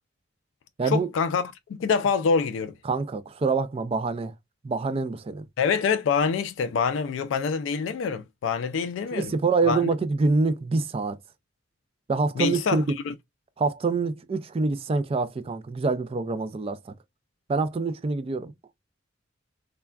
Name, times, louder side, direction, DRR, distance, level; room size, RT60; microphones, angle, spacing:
voice 1, 0.8-1.4 1.8-2.7 5.6-9.3 9.7-9.8 12.4-13.1, left 5 dB, 75° left, 0.3 m, -25 dB
voice 2, 2.8-4.3 4.6-5.4 9.1-11.2 12.1-13.0 13.6-16.9 17.5-18.5, right 4 dB, 30° right, 0.3 m, -26 dB
3.3 x 2.2 x 2.3 m
head